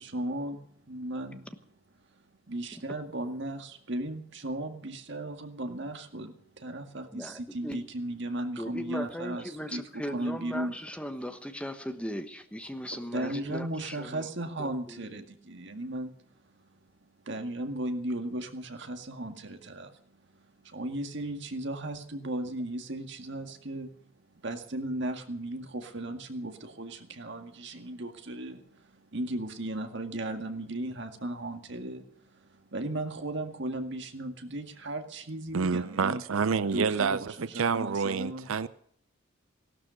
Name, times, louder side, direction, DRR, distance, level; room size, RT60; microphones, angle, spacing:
voice 1, 0.0-1.5 2.5-10.7 13.1-16.8 17.2-23.9 24.2-36.2 36.7-38.5, right 1 dB, 60° right, 2.0 m, -36 dB
voice 2, 7.1-7.8 8.6-14.3 14.6-15.1, equal, 5° left, 1.1 m, -38 dB
voice 3, 35.5-38.7, right 5 dB, 85° right, 0.6 m, -28 dB
17.0 x 12.5 x 6.4 m
head